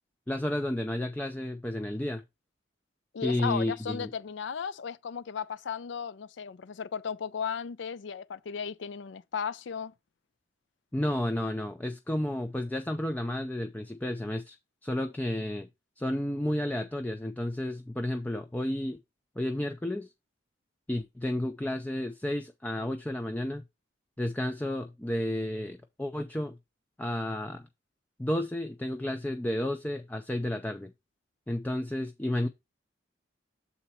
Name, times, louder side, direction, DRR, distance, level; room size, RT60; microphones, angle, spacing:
voice 1, 0.3-2.2 3.2-4.1 10.9-14.6 14.8-15.7 16.0-19.0 19.4-20.1 20.9-23.6 24.2-26.5 27.0-27.7 28.2-30.9 31.5-32.5, left 1 dB, 10° left, 0.4 m, -32 dB
voice 2, 3.1-9.9, left 7 dB, 70° left, 0.4 m, -35 dB
6.9 x 4.1 x 4.3 m
head